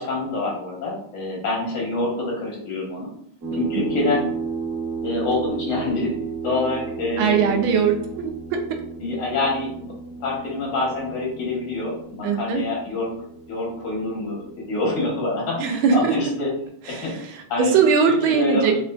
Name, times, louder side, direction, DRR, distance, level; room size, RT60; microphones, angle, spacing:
voice 1, 0.0-3.1 3.5-4.3 5.0-6.1 6.4-7.7 9.0-9.9 10.2-13.1 13.5-16.5 16.9-17.1 17.5-17.7 18.1-18.7, left 2 dB, 75° left, -3 dB, 1.9 m, -26 dB
sound 1, 3.4-16.5, right 4 dB, 55° right, 1.1 m, -34 dB
voice 2, 7.2-8.6 12.2-12.7 15.6-16.1 16.9-18.8, right 6 dB, 85° right, 4 dB, 1.4 m, -21 dB
4.3 x 2.4 x 2.3 m, 0.69 s
omnidirectional pair, 2.2 m